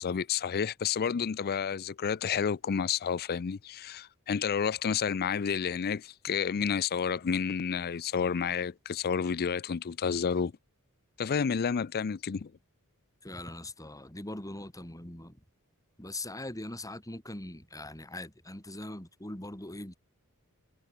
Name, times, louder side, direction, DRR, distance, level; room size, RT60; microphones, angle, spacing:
voice 1, 0.0-10.5 11.2-12.5, left 6 dB, 45° left, 0.4 m, -30 dB
voice 2, 13.2-15.4 16.0-20.0, left 1 dB, 15° left, 3.9 m, -41 dB
head